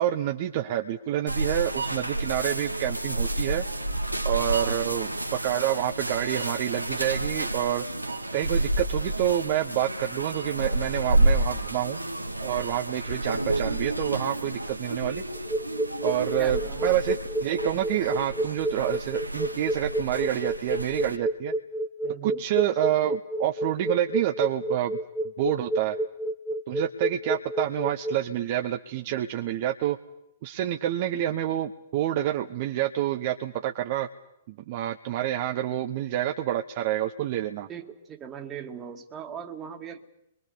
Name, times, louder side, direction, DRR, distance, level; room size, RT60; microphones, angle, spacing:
voice 1, 0.0-3.7 4.2-7.8 8.3-12.0 12.4-15.2 16.0-21.5 22.2-25.0 25.4-26.0 26.7-30.0 30.4-34.1 34.5-37.7, right 12 dB, 45° right, 5 dB, 1.0 m, -28 dB
sound 1, 1.3-21.2, right 1 dB, 85° right, 1.6 m, -30 dB
sound 2, 15.3-28.2, right 1 dB, ahead, 1.3 m, -29 dB
voice 2, 16.4-17.0 22.0-22.5 37.7-40.1, right 8 dB, 20° right, 6 dB, 2.0 m, -39 dB
25.0 x 23.0 x 6.8 m, 0.83 s
figure-of-eight pair, 110°, 0 cm